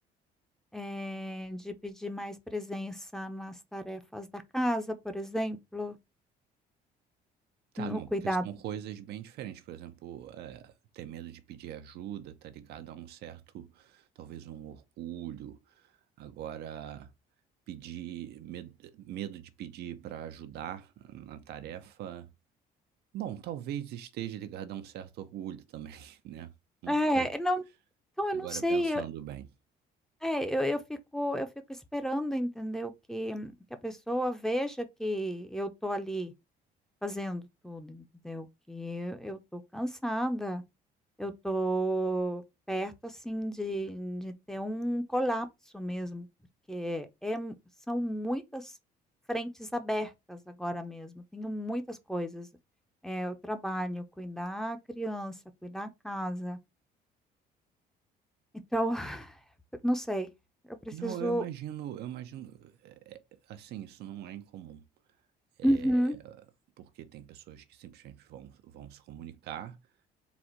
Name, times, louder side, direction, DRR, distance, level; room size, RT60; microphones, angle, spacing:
voice 1, 0.7-6.0 7.8-8.4 26.9-27.6 28.2-29.0 30.2-33.5 33.8-36.3 37.0-40.6 41.2-42.4 42.7-45.5 45.7-46.3 46.7-47.5 47.9-48.7 49.3-52.5 53.0-55.3 55.6-56.6 58.7-59.4 59.8-60.3 60.7-61.4 65.6-66.2, equal, 5° left, 0.7 m, -32 dB
voice 2, 7.7-17.1 17.7-22.3 23.1-26.5 26.8-27.3 28.3-29.5 60.9-64.9 65.6-66.4 66.8-69.8, right 11 dB, 75° right, 0.7 m, -42 dB
4.1 x 2.4 x 4.5 m
cardioid pair, 110°, 17 cm